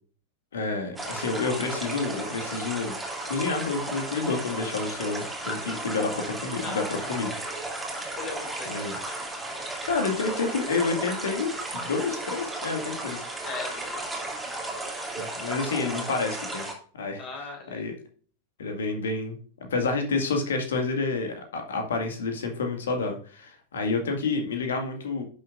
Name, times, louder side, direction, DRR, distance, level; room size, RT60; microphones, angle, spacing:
voice 1, 0.5-3.0 3.3-7.4 8.7-9.0 9.6-13.3 15.2-16.7 16.9-17.2 17.7-18.0 18.6-19.4 19.7-25.2, left 4 dB, 65° left, 4 dB, 1.9 m, -29 dB
sound 1, 1.0-16.7, right 2 dB, 5° right, 2.5 m, -34 dB
voice 2, 6.6-7.2 8.2-8.8 13.4-14.4 17.2-17.9, left 4 dB, 35° left, 2 dB, 3.6 m, -39 dB
11.0 x 6.5 x 2.5 m, 0.43 s
figure-of-eight pair, 90°, 0 cm